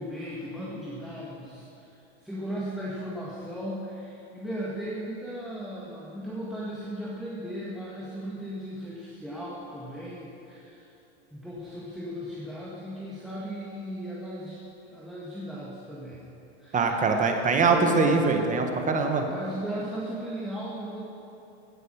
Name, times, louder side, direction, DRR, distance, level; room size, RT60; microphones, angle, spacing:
voice 1, 0.0-10.9 11.3-16.2 16.6-17.2 17.5-18.3 19.2-21.1, right 1 dB, ahead, -7 dB, 1.8 m, -36 dB
voice 2, 16.7-19.2, right 4 dB, 25° right, 4 dB, 1.4 m, -23 dB
16.0 x 6.6 x 6.6 m, 2.9 s
supercardioid pair, 120°, 33 cm